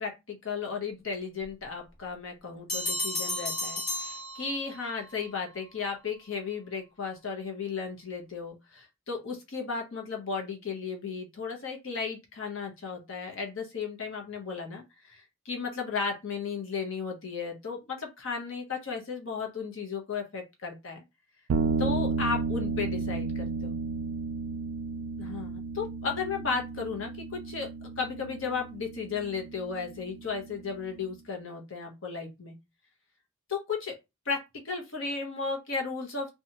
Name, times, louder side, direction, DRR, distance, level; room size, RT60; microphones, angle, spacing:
voice 1, 0.0-21.0 21.8-23.8 25.2-27.7 28.0-32.6 33.5-33.9 34.3-34.4 34.6-36.3, left 5 dB, 60° left, 1 dB, 0.8 m, -35 dB
Bell, 2.7-4.9, left 2 dB, 45° left, 1.3 m, -33 dB
sound 1, 21.5-31.0, right 4 dB, 85° right, 0.3 m, -33 dB
2.8 x 2.3 x 2.8 m, 0.23 s
head